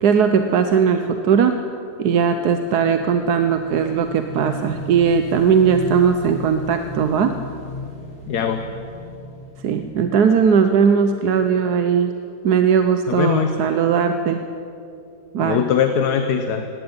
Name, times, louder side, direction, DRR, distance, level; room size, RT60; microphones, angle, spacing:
voice 1, 0.0-1.6 2.0-7.3 9.6-12.1 12.4-14.4 15.3-15.6, right 6 dB, 75° right, 8 dB, 1.4 m, -18 dB
Motorcycle / Engine, 2.4-10.8, left 2 dB, 40° left, 3.5 m, -36 dB
voice 2, 8.2-8.6 13.1-13.6 15.4-16.6, left 7 dB, 75° left, 7 dB, 1.5 m, -21 dB
18.5 x 17.5 x 9.7 m, 2.8 s
omnidirectional pair, 1.7 m